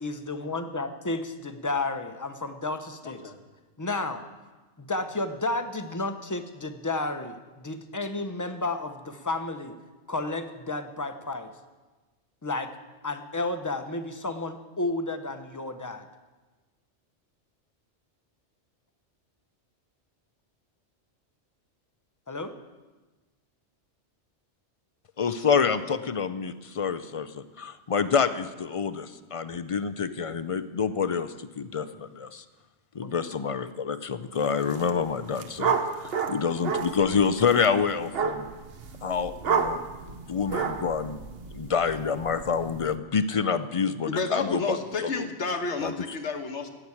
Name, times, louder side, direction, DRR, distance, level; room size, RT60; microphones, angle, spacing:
voice 1, 0.0-3.2 3.8-4.2 4.8-9.8 10.1-11.5 12.4-12.7 13.0-16.1 22.3-22.5 33.0-33.1, left 2 dB, 20° left, 8 dB, 0.7 m, -32 dB
voice 2, 3.0-3.4 44.1-46.7, left 3 dB, 80° left, 6 dB, 1.5 m, -31 dB
voice 3, 25.2-32.4 32.9-38.5 39.0-39.8 40.3-41.2 41.5-45.1 45.8-45.9, left 6 dB, 50° left, 12 dB, 0.4 m, -27 dB
sound 1, 34.5-34.9 35.2-43.0, right 6 dB, 60° right, 1.1 m, -31 dB
15.5 x 6.1 x 9.7 m, 1.2 s
omnidirectional pair, 1.2 m